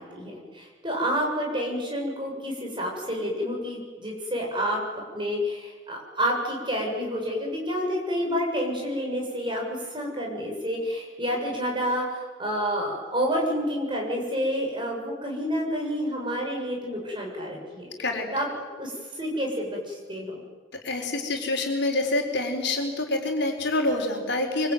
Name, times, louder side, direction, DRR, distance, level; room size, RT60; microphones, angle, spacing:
voice 1, 0.0-17.9 18.3-18.5 18.8-20.4, equal, 25° right, -1 dB, 7.4 m, -29 dB
voice 2, 20.7-24.7, left 2 dB, 55° left, 2 dB, 4.5 m, -26 dB
25.5 x 25.0 x 9.4 m, 1.5 s
head